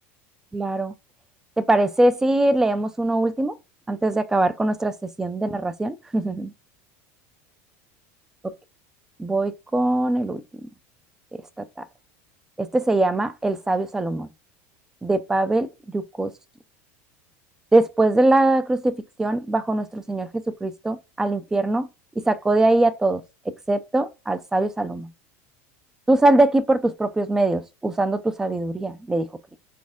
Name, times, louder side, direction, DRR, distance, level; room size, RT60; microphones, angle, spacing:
voice 1, 0.5-0.9 1.6-3.5 3.9-6.5 9.2-10.4 12.6-14.3 15.0-15.7 15.9-16.3 17.7-20.3 20.6-21.9 22.3-23.2 23.7-25.1 26.1-29.3, right 2 dB, 5° right, 0.4 m, -22 dB
4.2 x 3.4 x 3.6 m
supercardioid pair, 160°, 7 cm